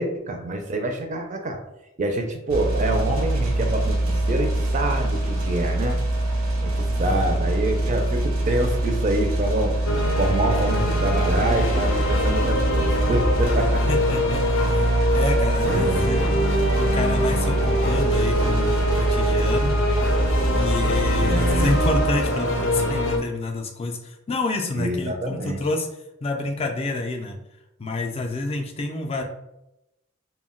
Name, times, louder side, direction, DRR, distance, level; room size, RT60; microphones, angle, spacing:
voice 1, 0.0-1.6 2.0-6.0 6.6-9.8 10.2-13.8 15.6-16.3 21.2-21.7 24.8-25.6, right 1 dB, 40° right, 4 dB, 0.4 m, -26 dB
sound 1, 2.5-22.1, right 1 dB, 90° right, 0.6 m, -24 dB
sound 2, 9.9-23.2, equal, 80° left, 0.5 m, -24 dB
voice 2, 13.9-16.2 16.8-19.8 20.5-25.9 26.2-27.4 27.8-29.2, left 2 dB, 30° left, 3 dB, 0.4 m, -28 dB
2.2 x 2.1 x 3.6 m, 0.88 s
head